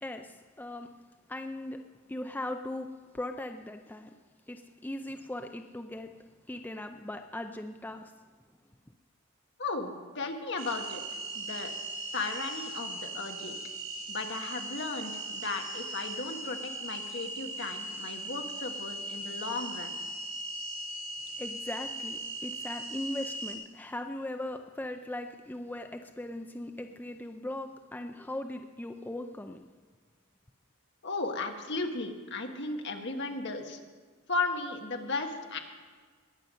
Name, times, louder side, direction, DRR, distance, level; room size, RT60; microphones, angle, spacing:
voice 1, 0.0-0.9 1.3-4.1 4.5-8.1 21.4-29.6, left 1 dB, 10° left, 5 dB, 0.4 m, -39 dB
voice 2, 9.6-11.0 11.3-11.7 12.1-13.6 14.1-20.0 31.0-33.8 34.3-35.6, left 3 dB, 55° left, 4 dB, 1.4 m, -35 dB
sound 1, 10.6-23.5, right 2 dB, 70° right, 5.0 m, -39 dB
21.0 x 7.9 x 5.4 m, 1.5 s
head